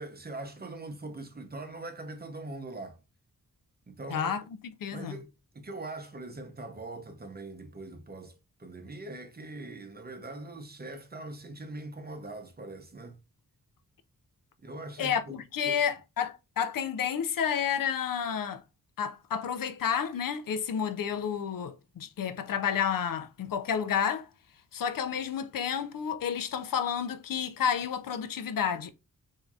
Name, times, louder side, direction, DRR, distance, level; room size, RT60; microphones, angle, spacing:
voice 1, 0.0-3.0 3.9-4.4 4.9-8.3 8.6-13.2 14.6-15.8, right 2 dB, 25° right, 0.8 m, -42 dB
voice 2, 4.1-4.4 4.8-5.2 15.0-18.6 19.0-24.3 24.7-28.9, left 8 dB, 70° left, 0.6 m, -30 dB
4.5 x 2.8 x 2.3 m
cardioid pair, 80°, 35 cm